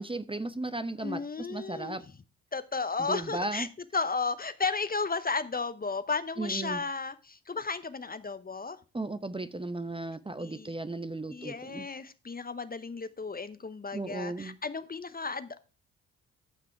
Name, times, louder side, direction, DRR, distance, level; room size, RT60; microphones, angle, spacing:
voice 1, 0.0-2.0 3.0-3.7 6.4-6.8 8.9-11.9 13.9-14.6, right 2 dB, 15° right, 12 dB, 0.8 m, -35 dB
voice 2, 1.0-2.0 2.5-3.7 3.9-8.8 10.4-10.7 11.3-15.6, left 4 dB, 25° left, 13 dB, 0.8 m, -34 dB
12.5 x 5.9 x 4.6 m, 0.34 s
hypercardioid pair, 45°, 37 cm